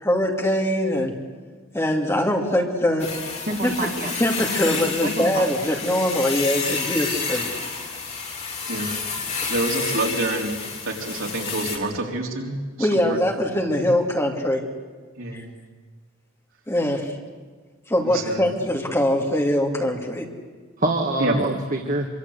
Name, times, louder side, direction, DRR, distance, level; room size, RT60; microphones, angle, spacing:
voice 1, 0.0-1.1 1.7-3.1 3.6-3.9 4.2-7.4 12.8-14.6 15.3-15.4 16.7-17.1 17.9-20.3, left 1 dB, 15° left, 1 dB, 2.7 m, -22 dB
sound 1, 3.0-11.8, left 5 dB, 35° left, 3.9 m, -30 dB
voice 2, 3.5-4.1 4.7-5.4 20.8-22.1, right 2 dB, 40° right, 3 dB, 1.9 m, -26 dB
voice 3, 9.5-13.2 13.7-13.9 15.2-15.5 18.1-18.4 21.2-21.4, right 2 dB, 70° right, 0 dB, 4.1 m, -27 dB
25.5 x 24.5 x 8.3 m, 1.4 s
head